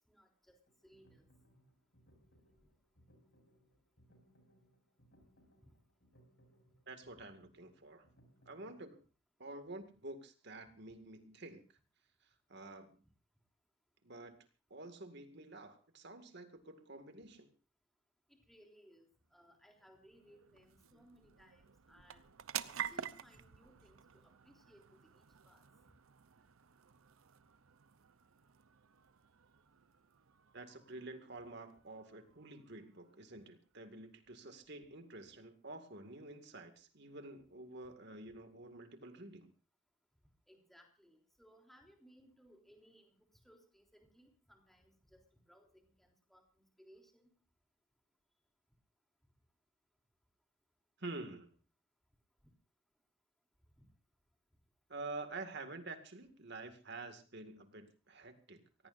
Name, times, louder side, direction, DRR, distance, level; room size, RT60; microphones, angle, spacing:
voice 1, 0.1-1.3 5.7-5.8 18.3-19.1 19.3-22.3 22.7-25.6 40.5-43.2 43.4-47.3 53.8-53.9, equal, ahead, 2 dB, 3.4 m, -64 dB
sound 1, 0.7-8.8, equal, 60° left, 6.1 m, -69 dB
voice 2, 6.9-8.1 8.5-9.0 9.4-11.6 12.5-13.0 14.0-14.4 14.7-17.5 30.5-39.5 51.0-51.5 54.9-58.9, right 2 dB, 55° right, 7 dB, 2.1 m, -49 dB
sound 2, 19.1-33.9, right 9 dB, 85° right, 0.8 m, -50 dB
24.5 x 17.0 x 2.6 m, 0.35 s
head